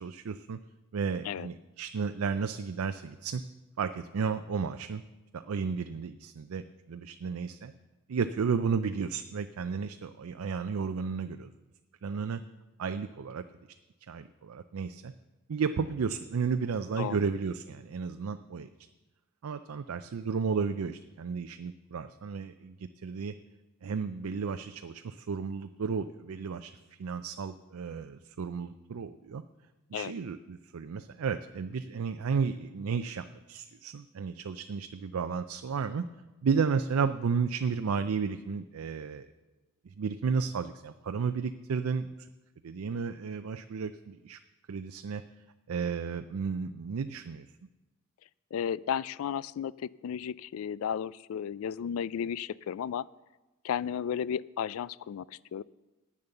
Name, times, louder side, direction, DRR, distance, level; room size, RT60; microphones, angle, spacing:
voice 1, 0.0-0.6 0.9-3.4 3.8-5.0 5.3-7.7 8.1-11.5 12.0-12.4 12.8-13.4 14.1-15.1 15.5-18.7 19.4-23.3 23.8-26.7 27.0-29.4 29.9-36.1 36.4-39.3 39.9-42.1 42.6-44.4 44.7-45.2 45.7-47.5, right 5 dB, 90° right, 9 dB, 0.4 m, -33 dB
voice 2, 48.5-53.1 53.6-55.6, left 8 dB, 75° left, 21 dB, 0.3 m, -34 dB
10.5 x 8.6 x 6.6 m, 1.1 s
head